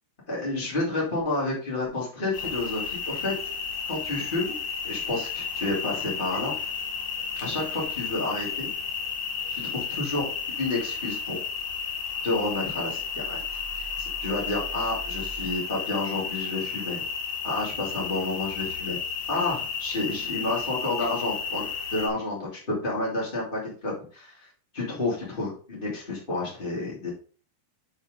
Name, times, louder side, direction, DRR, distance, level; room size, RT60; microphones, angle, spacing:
voice 1, 0.3-3.3 3.9-6.5 7.4-8.7 9.5-10.3 10.6-11.4 12.2-13.4 13.8-17.0 17.4-19.0 19.3-24.5 24.7-27.1, left 2 dB, 20° left, -5 dB, 1.4 m, -30 dB
sound 1, 2.3-22.1, left 6 dB, 75° left, 3.7 m, -33 dB
8.0 x 4.6 x 3.8 m, 0.40 s
omnidirectional pair, 5.9 m